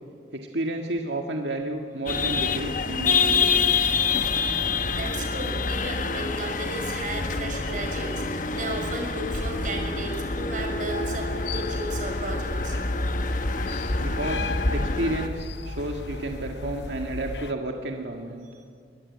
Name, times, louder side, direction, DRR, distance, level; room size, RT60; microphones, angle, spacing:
voice 1, 0.3-3.9 14.0-18.5, right 1 dB, 85° right, 2 dB, 1.8 m, -31 dB
sound 1, 2.1-15.3, left 4 dB, 50° left, 1.1 m, -27 dB
voice 2, 3.5-12.8, right 2 dB, 50° right, 2 dB, 5.9 m, -35 dB
sound 2, 10.9-17.5, left 3 dB, 75° left, 0.9 m, -35 dB
sound 3, 12.2-17.5, equal, 20° left, 6.4 m, -48 dB
22.5 x 20.5 x 9.6 m, 2.3 s
head